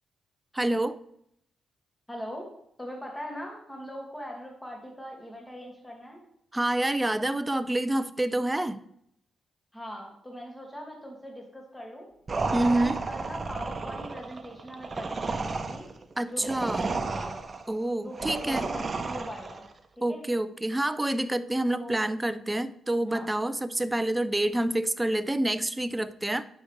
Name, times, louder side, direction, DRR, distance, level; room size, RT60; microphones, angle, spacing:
voice 1, 0.5-1.0 6.5-8.8 12.5-13.0 16.2-16.9 17.7-18.7 20.0-26.4, right 1 dB, 15° right, 14 dB, 0.6 m, -27 dB
voice 2, 2.1-2.5 2.8-6.2 9.7-12.1 12.6-15.9 16.3-17.4 18.0-19.6 20.1-20.2 21.7-22.0 23.1-23.3, equal, 10° left, 0 dB, 2.3 m, -41 dB
sound 1, 12.3-19.7, right 3 dB, 40° right, 0.9 m, -33 dB
9.4 x 6.6 x 3.3 m, 0.75 s
hypercardioid pair, 45°, 0 cm